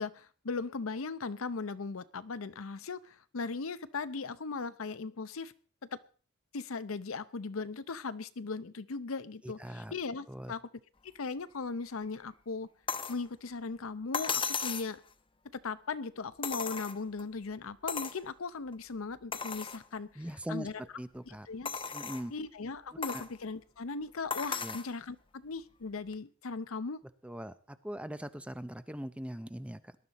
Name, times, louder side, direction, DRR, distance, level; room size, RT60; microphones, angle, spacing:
voice 1, 0.0-5.5 5.9-6.0 6.5-10.6 11.0-12.7 13.1-15.0 15.6-20.2 20.5-20.7 21.3-21.7 22.3-27.0, left 4 dB, 75° left, 14 dB, 0.7 m, -38 dB
voice 2, 9.4-9.9 10.3-10.5 20.2-20.7 21.0-21.5 21.9-22.3 23.1-23.2 24.5-24.8 27.2-30.0, equal, 5° right, 12 dB, 0.6 m, -41 dB
sound 1, 12.9-13.2 14.1-14.9 16.4-17.2 17.9-18.2 18.7-18.8 19.3-19.8 20.4-20.5 21.7-22.3 23.0-23.3 24.3-24.9 26.1-26.2, left 5 dB, 25° left, 0.9 m, -35 dB
18.5 x 11.5 x 4.1 m, 0.40 s
head